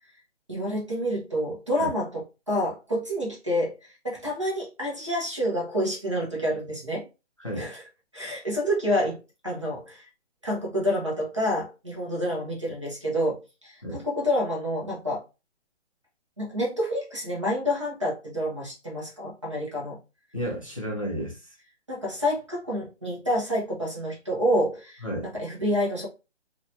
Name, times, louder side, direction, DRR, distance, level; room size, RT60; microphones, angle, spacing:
voice 1, 0.5-7.0 7.5-7.8 8.1-10.0 10.4-15.2 16.4-20.0 21.9-26.1, equal, 25° right, 0.5 m, -28 dB
voice 2, 20.3-21.5 25.0-25.3, equal, 30° left, 0.4 m, -32 dB
2.6 x 2.2 x 2.5 m
hypercardioid pair, 175°, 34 cm